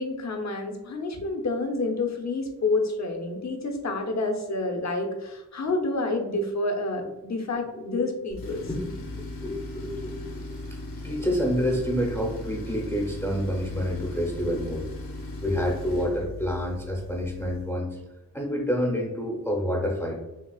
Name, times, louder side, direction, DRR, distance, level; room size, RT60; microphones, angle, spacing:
voice 1, 0.0-8.6, left 2 dB, 50° left, 3 dB, 0.9 m, -28 dB
Tools, 8.3-17.8, left 2 dB, 70° left, 1.1 m, -38 dB
voice 2, 9.4-10.3 10.7-10.8 11.0-14.9 15.4-18.0 18.3-20.2, equal, 5° left, -2 dB, 0.8 m, -28 dB
5.9 x 2.4 x 2.4 m, 1.0 s
cardioid pair, 70°, 36 cm